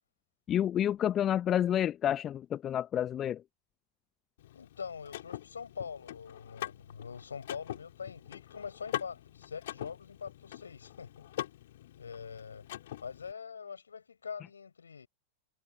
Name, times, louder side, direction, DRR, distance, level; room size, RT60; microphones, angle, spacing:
voice 1, 0.5-3.4, left 10 dB, 30° left, 0.8 m, -29 dB
Car / Mechanisms, 4.4-13.3, left 13 dB, 55° left, 3.5 m, -43 dB
voice 2, 4.5-11.3 12.0-12.7 13.0-15.1, left 6 dB, 70° left, 5.3 m, -43 dB
figure-of-eight pair, 90°, 0 cm